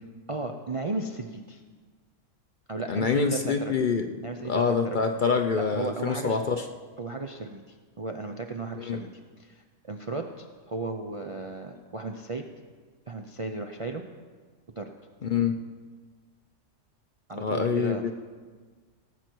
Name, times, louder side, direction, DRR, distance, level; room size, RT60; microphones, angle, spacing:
voice 1, 0.3-1.6 2.7-3.7 4.2-5.0 5.5-6.4 7.0-9.1 9.4-12.4 13.1-14.0 14.8-14.9 17.3-18.1, right 3 dB, 40° right, 3 dB, 0.5 m, -35 dB
voice 2, 2.9-4.1 4.4-6.7 8.8-9.0 15.2-15.6 17.4-18.1, left 5 dB, 50° left, 6 dB, 0.6 m, -26 dB
17.5 x 8.0 x 4.5 m, 1.5 s
omnidirectional pair, 1.3 m